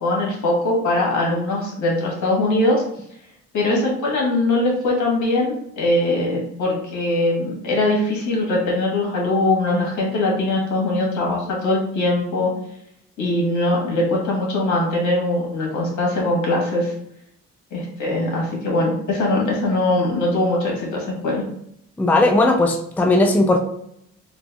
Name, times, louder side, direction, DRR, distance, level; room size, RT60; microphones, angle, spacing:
voice 1, 0.0-2.8 3.5-12.5 13.2-16.9 17.7-21.4, left 2 dB, 75° left, -1 dB, 1.4 m, -21 dB
voice 2, 22.0-23.6, left 2 dB, 5° left, 4 dB, 0.4 m, -17 dB
3.3 x 2.5 x 3.4 m, 0.74 s
cardioid pair, 90°, 30 cm